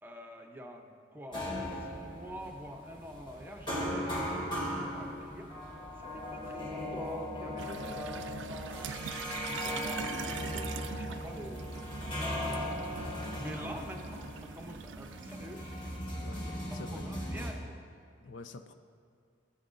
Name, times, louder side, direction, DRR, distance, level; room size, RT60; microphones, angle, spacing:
voice 1, 0.0-5.5 5.9-8.8 9.1-12.9 13.4-14.3 14.5-15.6 16.7-17.8, equal, 10° right, 2 dB, 0.7 m, -46 dB
sound 1, 1.3-17.5, left 1 dB, 25° left, 1.5 m, -38 dB
sound 2, 7.6-16.0, right 7 dB, 70° right, 0.4 m, -43 dB
voice 2, 16.2-17.0 18.2-18.7, left 3 dB, 70° left, 8 dB, 0.5 m, -47 dB
18.0 x 7.1 x 2.6 m, 2.3 s
head